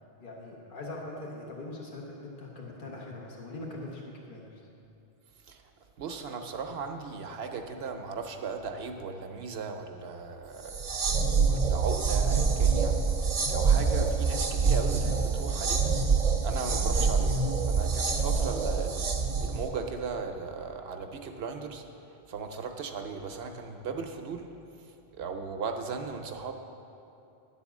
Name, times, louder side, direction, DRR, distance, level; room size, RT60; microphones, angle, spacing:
voice 1, 0.2-4.6, left 2 dB, 55° left, -2 dB, 1.4 m, -41 dB
voice 2, 6.0-10.8 11.4-16.0 16.4-21.8 22.3-24.5 25.1-26.5, right 5 dB, 75° right, 5 dB, 0.9 m, -37 dB
sound 1, 10.6-19.7, right 5 dB, 40° right, 0.6 m, -26 dB
10.0 x 4.2 x 7.2 m, 2.9 s
omnidirectional pair, 1.1 m